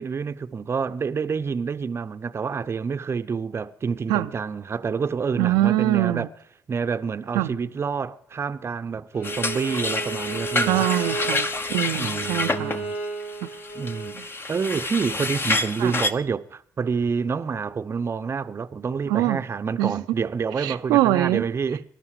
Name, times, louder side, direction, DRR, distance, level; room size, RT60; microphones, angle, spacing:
voice 1, 0.0-6.3 6.7-10.9 11.9-13.0 13.7-14.2 14.5-21.8, right 5 dB, 35° right, 0.7 m, -28 dB
voice 2, 5.4-6.3 7.3-7.5 10.7-12.7 13.4-13.5 14.1-14.2 15.8-15.9 19.1-19.4 19.8-20.0 20.6-21.4, right 15 dB, 80° right, 0.5 m, -23 dB
Bowed string instrument, 9.1-14.2, right 3 dB, 85° left, 3.3 m, -33 dB
sound 1, 9.2-16.1, left 2 dB, 35° left, 1.1 m, -28 dB
20.0 x 11.5 x 4.9 m
hypercardioid pair, 60°, 7 cm